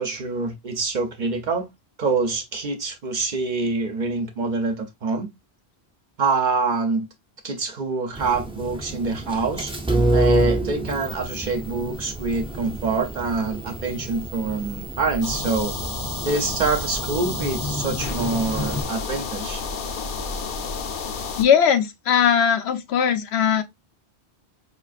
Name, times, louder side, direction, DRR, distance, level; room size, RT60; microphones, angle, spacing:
voice 1, 0.0-1.7 2.0-5.3 6.2-7.1 7.4-9.7 10.1-15.7 16.2-19.6, right 4 dB, 55° right, 0.7 m, -25 dB
sound 1, 8.2-18.8, right 1 dB, 10° right, 0.4 m, -28 dB
sound 2, 15.2-21.4, left 5 dB, 60° left, 0.7 m, -31 dB
voice 2, 21.4-23.6, left 8 dB, 80° left, 0.9 m, -19 dB
4.8 x 2.4 x 2.4 m
omnidirectional pair, 1.1 m